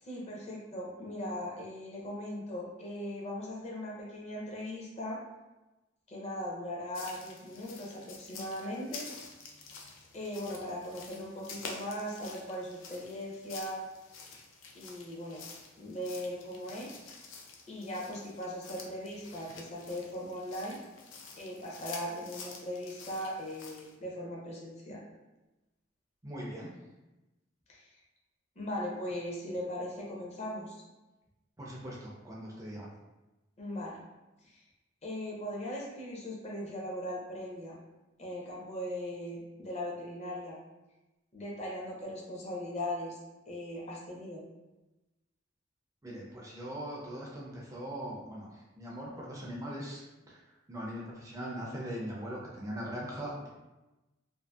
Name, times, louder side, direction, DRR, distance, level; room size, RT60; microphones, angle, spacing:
voice 1, 0.0-5.2 6.1-9.1 10.1-13.8 14.7-15.4 15.8-17.0 17.7-20.8 21.4-25.0 27.7-27.9 28.6-30.8 33.6-34.0 34.5-34.6 35.0-37.8 38.2-40.6 41.3-43.2 43.5-44.4, left 1 dB, 35° left, -3 dB, 0.5 m, -39 dB
sound 1, 6.9-23.9, left 4 dB, 85° left, 0.4 m, -49 dB
voice 2, 26.2-26.7 31.6-32.9 46.0-50.4 50.7-53.5, equal, 15° right, -4 dB, 0.3 m, -40 dB
2.6 x 2.4 x 2.3 m, 1.0 s
head